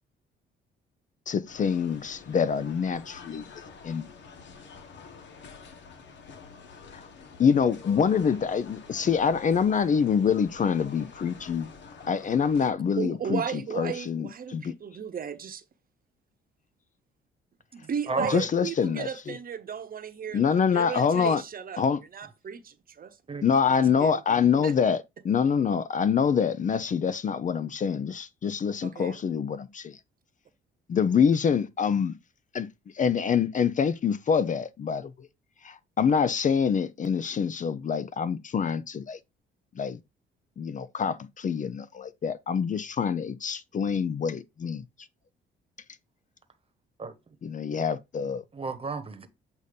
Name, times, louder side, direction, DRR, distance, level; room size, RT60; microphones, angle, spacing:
voice 1, 1.3-3.4 3.8-4.0 6.9-7.0 7.4-11.7 12.1-14.7 18.2-19.4 20.3-21.4 21.8-22.0 23.4-30.0 30.9-32.1 32.5-32.7 32.9-35.1 35.6-39.2 39.8-40.0 40.6-44.8 47.4-48.4, left 6 dB, 40° left, 0.5 m, -26 dB
sound 1, 1.5-12.7, left 5 dB, 65° left, 1.3 m, -48 dB
voice 2, 13.0-15.6 17.7-20.4 20.7-21.9 22.1-23.2 24.0-24.2 24.6-24.8 28.8-29.2, right 7 dB, 45° right, 0.9 m, -35 dB
voice 3, 18.1-18.5 23.3-23.4 47.0-47.3 48.5-49.3, right 4 dB, 30° right, 1.2 m, -33 dB
8.1 x 2.7 x 5.1 m
cardioid pair, 90°, 20 cm